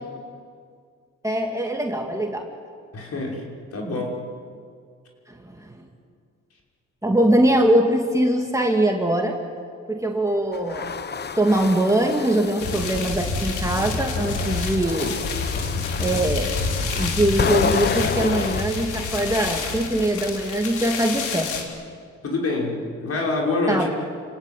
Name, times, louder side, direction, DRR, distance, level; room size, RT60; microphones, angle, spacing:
voice 1, 1.2-2.5 5.3-5.8 7.0-9.4 9.9-11.0 11.4-15.1 16.0-16.5 16.9-21.5 23.7-23.9, right 1 dB, 10° right, 1 dB, 2.8 m, -22 dB
voice 2, 2.9-3.4 3.7-4.2 22.2-23.9, left 2 dB, 55° left, -1 dB, 6.1 m, -25 dB
sound 1, 10.5-13.1 13.8-18.6, left 6 dB, 35° left, 1.0 m, -30 dB
sound 2, 12.6-21.6, left 4 dB, 85° left, 3.7 m, -28 dB
30.0 x 18.0 x 9.5 m, 2.1 s
cardioid pair, 90°, 30 cm